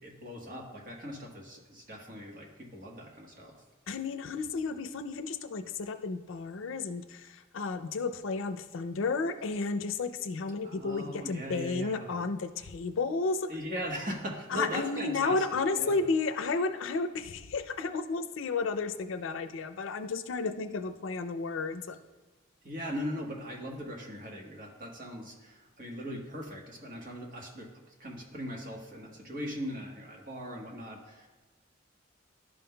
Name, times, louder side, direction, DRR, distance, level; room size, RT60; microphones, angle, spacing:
voice 1, 0.0-3.5 10.6-12.3 13.5-16.0 22.6-27.7 28.0-31.3, equal, 45° right, 0 dB, 1.2 m, -39 dB
voice 2, 3.9-13.5 14.5-22.0, left 4 dB, 85° left, 9 dB, 0.4 m, -32 dB
11.5 x 5.5 x 2.2 m, 1.2 s
head